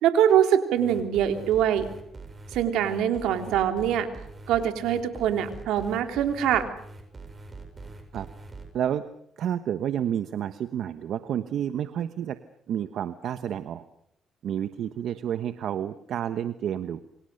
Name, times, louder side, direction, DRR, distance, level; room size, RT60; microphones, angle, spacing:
voice 1, 0.0-1.9 2.5-4.1 4.5-6.7, right 9 dB, 90° right, 7 dB, 3.3 m, -23 dB
sound 1, 0.8-8.6, right 3 dB, 30° right, 7.8 m, -43 dB
voice 2, 8.7-9.1 9.4-12.4 12.7-13.8 14.4-17.0, right 10 dB, 70° right, 11 dB, 1.2 m, -30 dB
28.5 x 25.0 x 6.7 m, 0.74 s
cardioid pair, 90°, 0 cm